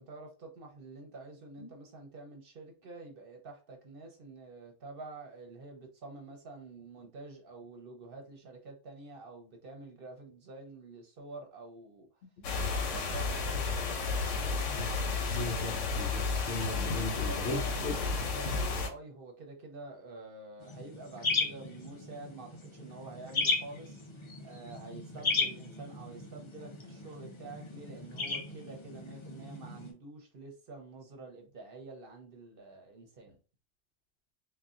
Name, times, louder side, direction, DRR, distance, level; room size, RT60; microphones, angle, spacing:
voice 1, 0.0-12.1 12.8-14.6 16.5-24.0 24.4-33.4, right 3 dB, 55° right, 0.8 m, -48 dB
sound 1, 12.4-18.9, left 4 dB, 85° left, 1.0 m, -32 dB
voice 2, 15.3-18.0, left 3 dB, 70° left, 0.9 m, -38 dB
sound 2, 20.6-29.9, left 3 dB, 40° left, 0.5 m, -36 dB
3.9 x 2.2 x 2.4 m
omnidirectional pair, 1.2 m